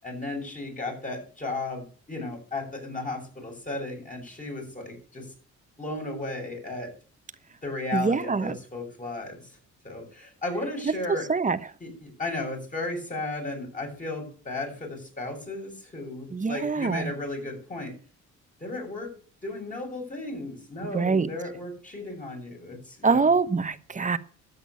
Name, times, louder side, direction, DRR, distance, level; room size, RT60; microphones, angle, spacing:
voice 1, 0.0-5.3 5.8-6.9 7.6-9.4 9.8-11.3 11.8-17.9 18.6-19.1 19.4-23.2, left 2 dB, 25° left, 0 dB, 8.0 m, -34 dB
voice 2, 7.9-8.6 11.3-11.6 16.3-17.1 20.9-21.3 23.0-24.2, right 4 dB, 25° right, 12 dB, 1.1 m, -24 dB
13.0 x 8.4 x 8.6 m, 0.41 s
cardioid pair, 90°, 30 cm